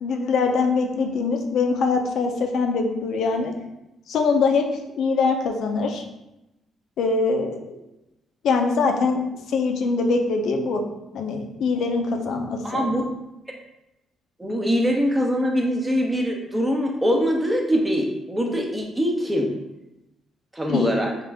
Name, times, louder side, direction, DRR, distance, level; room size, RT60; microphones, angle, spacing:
voice 1, 0.0-3.5 4.1-4.6 5.0-6.0 7.0-7.8 8.4-9.2 9.5-10.8 11.1-12.9 20.7-20.9, left 4 dB, 75° left, 3 dB, 0.6 m, -23 dB
voice 2, 12.6-13.0 14.4-19.5 20.5-21.1, equal, 15° right, 1 dB, 0.8 m, -23 dB
3.7 x 3.2 x 3.4 m, 0.92 s
cardioid pair, 90°, 0 cm